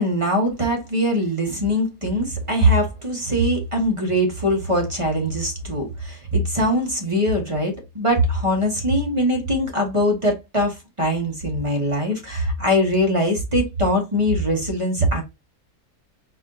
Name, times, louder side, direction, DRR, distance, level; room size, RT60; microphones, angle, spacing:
voice 1, 0.0-15.2, equal, 20° right, 1.3 m, -22 dB
4.8 x 2.8 x 3.6 m
omnidirectional pair, 1.7 m